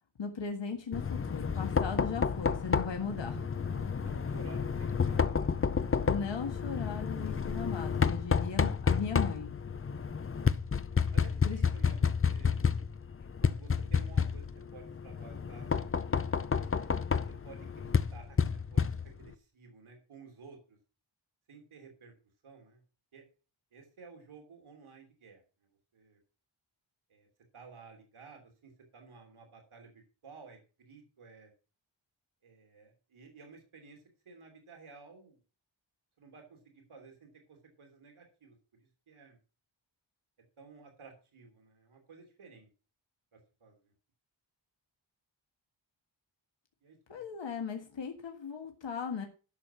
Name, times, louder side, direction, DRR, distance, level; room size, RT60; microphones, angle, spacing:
voice 1, 0.2-3.5 6.1-9.5 11.4-11.6 47.1-49.3, left 6 dB, 65° left, 3 dB, 1.7 m, -37 dB
Knock, 0.9-19.3, left 6 dB, 30° left, 0.6 m, -30 dB
voice 2, 3.6-6.2 11.1-12.6 13.4-14.4 14.7-15.9 16.5-18.4 18.7-20.8 21.5-22.1 22.4-22.8 23.1-23.2 23.7-26.2 27.1-27.3 27.5-29.9 30.2-31.5 32.4-35.4 36.2-38.6 39.1-39.4 40.6-42.7 43.3-43.9 46.8-47.2, right 4 dB, 90° right, 3 dB, 3.2 m, -54 dB
12.0 x 6.6 x 5.7 m, 0.35 s
wide cardioid pair, 130°, 48 cm